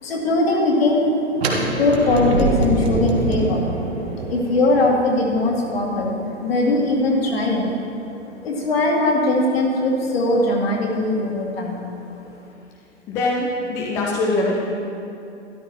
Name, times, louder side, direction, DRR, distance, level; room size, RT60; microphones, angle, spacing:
voice 1, 0.0-1.1 1.6-3.6 4.2-7.8 8.4-11.8, left 2 dB, 55° left, -1 dB, 2.1 m, -20 dB
sound 1, 1.3-7.2, right 3 dB, 60° right, 1.6 m, -25 dB
voice 2, 13.1-14.6, left 2 dB, 5° left, -3 dB, 0.4 m, -22 dB
13.0 x 11.5 x 3.0 m, 2.8 s
figure-of-eight pair, 110°, 36 cm